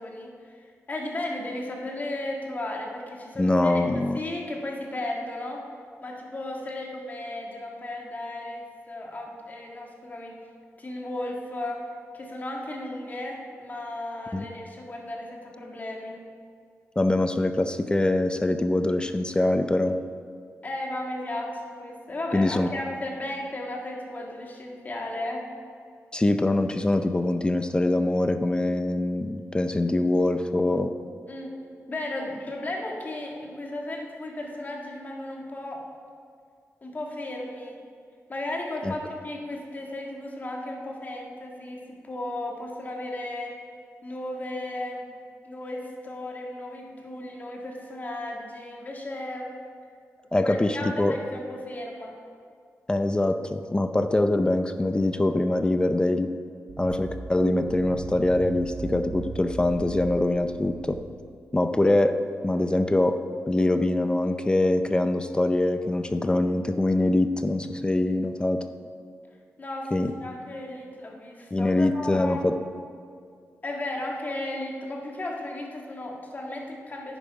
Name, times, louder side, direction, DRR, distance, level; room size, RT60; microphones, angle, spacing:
voice 1, 0.0-5.7 6.0-10.4 10.8-16.2 20.6-25.5 31.3-31.6 31.9-35.8 36.8-37.8 38.3-43.6 44.0-45.1 45.5-49.5 50.4-52.1 69.6-72.4 73.6-77.2, left 1 dB, 35° left, 0 dB, 1.7 m, -35 dB
voice 2, 3.4-4.2 14.3-14.5 17.0-20.0 22.3-22.7 26.1-30.9 38.8-38.9 50.3-51.1 52.9-56.3 56.8-61.0 61.5-62.2 62.4-63.2 63.5-68.6 69.9-70.1 71.5-72.5, left 2 dB, 15° left, 8 dB, 0.5 m, -23 dB
sound 1, 56.7-61.4, right 5 dB, 75° right, 0.7 m, -38 dB
11.0 x 9.1 x 5.0 m, 2.2 s
wide cardioid pair, 115°, 5 cm